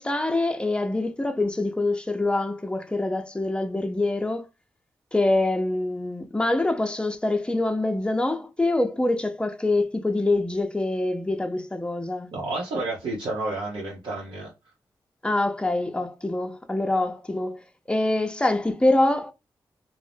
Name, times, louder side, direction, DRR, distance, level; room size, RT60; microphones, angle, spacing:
voice 1, 0.0-4.5 5.1-12.3 15.2-17.6 17.9-19.3, left 2 dB, 10° left, 0.5 m, -25 dB
voice 2, 12.3-14.5, right 2 dB, 80° right, 0.8 m, -30 dB
2.6 x 2.0 x 3.3 m
cardioid pair, 50°, 8 cm